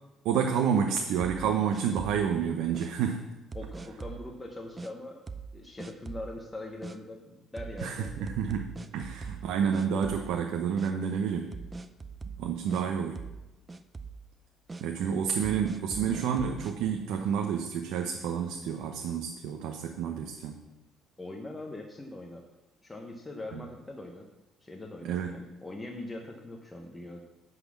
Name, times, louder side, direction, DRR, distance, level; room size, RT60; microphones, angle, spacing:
voice 1, 0.2-3.3 7.8-11.5 12.4-13.2 14.8-20.6 23.5-23.6 25.0-25.3, right 7 dB, 85° right, 3 dB, 0.7 m, -29 dB
sound 1, 1.2-2.3 2.7-2.9 3.5-4.3 4.8-4.9 5.3-5.5 5.8-6.3 6.8-7.0 7.6-9.5 9.7-10.5 10.8-10.9 11.5-12.8 13.2-13.4 13.7-14.2 14.7-14.8 15.4-16.7, right 4 dB, 20° right, 0.5 m, -41 dB
voice 2, 3.5-5.2 5.5-8.3 21.2-22.4 22.8-24.2 24.6-27.2, left 2 dB, 10° left, 1 dB, 0.8 m, -42 dB
10.5 x 4.1 x 7.2 m, 1.0 s
cardioid pair, 150°, 0 cm